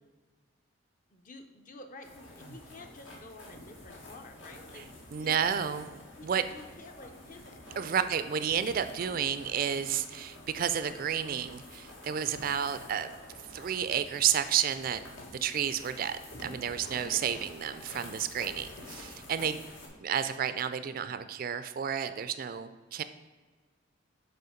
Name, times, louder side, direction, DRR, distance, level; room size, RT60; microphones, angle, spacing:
voice 1, 1.1-5.5 6.1-8.1 8.5-8.6, left 2 dB, 40° left, 6 dB, 0.7 m, -51 dB
sound 1, 2.0-19.9, left 1 dB, 80° left, 1.8 m, -49 dB
voice 2, 5.1-6.4 7.8-13.1 13.5-15.0 15.4-19.6 20.0-23.0, right 8 dB, 45° right, 12 dB, 0.3 m, -31 dB
6.8 x 4.3 x 5.0 m, 1.4 s
head